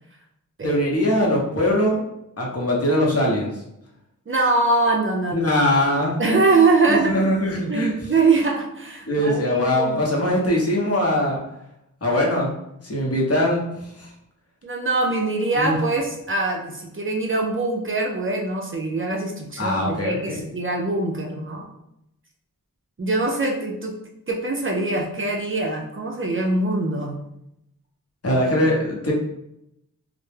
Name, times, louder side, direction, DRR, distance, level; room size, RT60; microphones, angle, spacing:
voice 1, 0.6-2.0 2.4-3.5 5.3-6.2 6.9-7.9 9.1-11.4 12.0-12.5 12.8-14.1 15.6-15.8 19.6-20.4 28.2-29.1, left 1 dB, 45° left, -3 dB, 0.8 m, -21 dB
voice 2, 4.3-5.6 6.2-7.3 7.7-10.4 13.1-13.2 14.6-21.6 23.0-24.0 24.3-27.2, right 3 dB, 40° right, 0 dB, 0.4 m, -23 dB
2.1 x 2.0 x 3.2 m, 0.81 s
wide cardioid pair, 50°, 34 cm